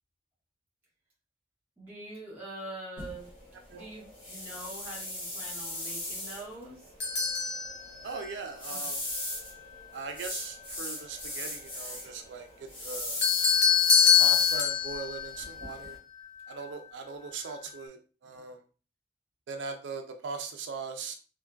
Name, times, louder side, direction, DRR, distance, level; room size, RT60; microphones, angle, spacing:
voice 1, 1.8-3.3 3.7-6.8 8.7-8.8, right 1 dB, 10° right, -6 dB, 1.3 m, -44 dB
sound 1, 3.0-16.0, left 1 dB, 30° left, 0.9 m, -39 dB
sound 2, 7.0-8.3 13.2-16.5, left 7 dB, 70° left, 0.7 m, -25 dB
voice 2, 8.0-9.0 9.9-13.2 14.2-16.0 16.5-18.6 19.5-21.1, right 5 dB, 85° right, 5 dB, 0.4 m, -40 dB
3.3 x 2.2 x 2.2 m, 0.37 s
head